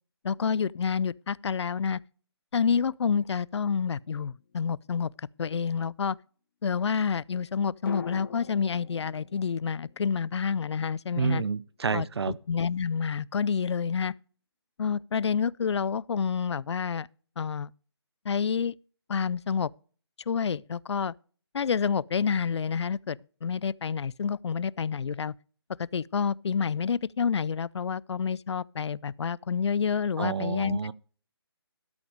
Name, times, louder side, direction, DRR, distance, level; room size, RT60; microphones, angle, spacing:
voice 1, 0.2-2.0 2.5-6.2 6.6-11.4 11.9-12.1 12.5-14.1 14.8-17.1 17.4-17.7 18.2-18.8 19.1-19.7 20.3-21.1 21.5-25.3 25.8-30.8, left 6 dB, 85° left, 0.4 m, -28 dB
sound 1, 4.4-5.4 7.9-11.8 12.1-12.2, left 6 dB, 55° left, 2.3 m, -45 dB
voice 2, 11.2-12.4 30.2-30.9, right 5 dB, 70° right, 0.6 m, -29 dB
13.0 x 5.9 x 5.1 m
hypercardioid pair, 160°, 14 cm